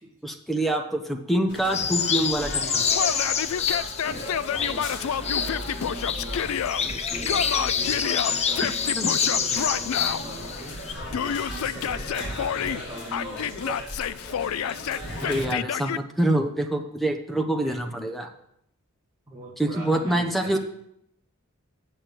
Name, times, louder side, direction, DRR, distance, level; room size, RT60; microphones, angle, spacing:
voice 1, 0.2-2.8 8.6-8.7 8.9-9.1 15.2-18.3 19.6-20.6, right 1 dB, ahead, 4 dB, 1.0 m, -26 dB
sound 1, 1.5-15.5, left 1 dB, 55° left, 2.3 m, -37 dB
sound 2, 1.7-10.9, left 6 dB, 30° left, 0.7 m, -27 dB
Yell, 2.9-6.8 7.3-10.2 11.1-12.8 13.1-16.0, left 8 dB, 75° left, 0.4 m, -29 dB
voice 2, 4.4-6.5 6.8-10.8 11.2-13.8 17.6-17.8 19.3-20.6, right 1 dB, 15° right, -5 dB, 2.0 m, -41 dB
7.5 x 6.7 x 7.9 m, 0.74 s
head